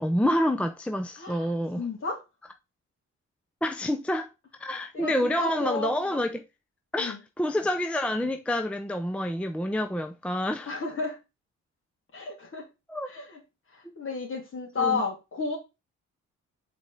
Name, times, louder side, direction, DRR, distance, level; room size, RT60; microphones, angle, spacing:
voice 1, 0.0-1.8 3.6-4.3 4.6-6.4 6.9-10.7 12.9-13.1 13.8-13.9 14.8-15.0, left 1 dB, 5° left, 0.5 m, -28 dB
voice 2, 1.2-2.2 4.9-6.2 6.9-7.2 10.7-11.2 12.1-12.7 13.1-13.4 13.7-15.6, left 4 dB, 45° left, 2.7 m, -32 dB
5.1 x 4.2 x 5.0 m
cardioid pair, 90°, 30 cm